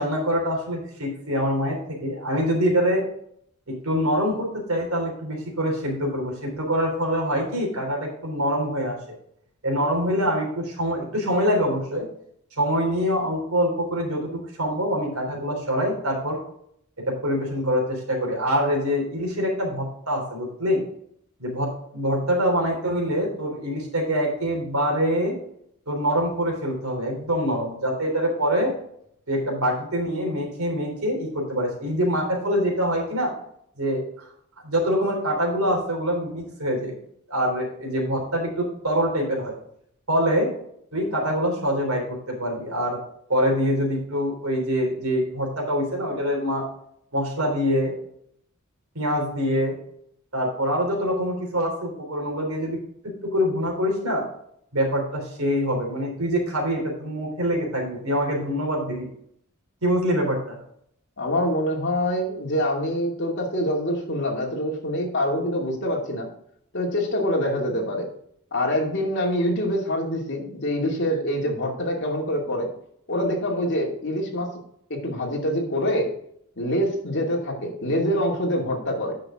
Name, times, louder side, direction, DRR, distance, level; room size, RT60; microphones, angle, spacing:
voice 1, 0.0-3.0 3.7-9.0 9.6-12.1 12.6-16.4 17.1-20.8 21.4-25.3 25.9-28.7 29.3-33.3 33.8-34.2 34.6-36.9 37.3-39.5 40.1-40.5 40.9-43.0 43.3-46.7 47.1-47.9 48.9-49.8 50.3-52.8 53.2-54.2 54.7-59.1 59.8-60.6, equal, 75° right, 1 dB, 3.4 m, -25 dB
voice 2, 61.2-66.3 66.7-68.1 68.5-72.7 73.1-74.5 74.9-76.1 76.6-79.1, equal, 55° left, -1 dB, 2.5 m, -25 dB
9.4 x 6.2 x 3.7 m, 0.68 s
head